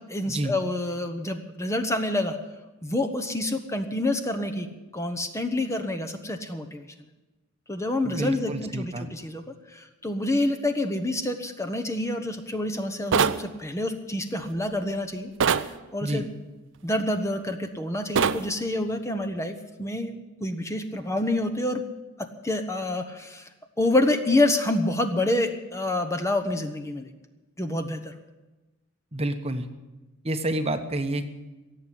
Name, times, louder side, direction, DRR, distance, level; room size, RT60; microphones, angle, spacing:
voice 1, 0.1-2.4 2.8-4.7 4.9-6.9 7.7-9.4 9.7-15.3 15.6-16.2 16.8-21.8 22.2-23.5 23.8-27.1 27.6-28.1, left 1 dB, 15° left, 7 dB, 1.0 m, -27 dB
voice 2, 8.0-9.1 16.0-16.3 29.1-29.7 30.2-31.3, right 1 dB, 30° right, 8 dB, 1.0 m, -29 dB
sound 1, 13.1-13.4 15.4-15.7 18.2-18.4, right 6 dB, 60° right, 0.6 m, -21 dB
17.0 x 7.8 x 9.9 m, 1.1 s
head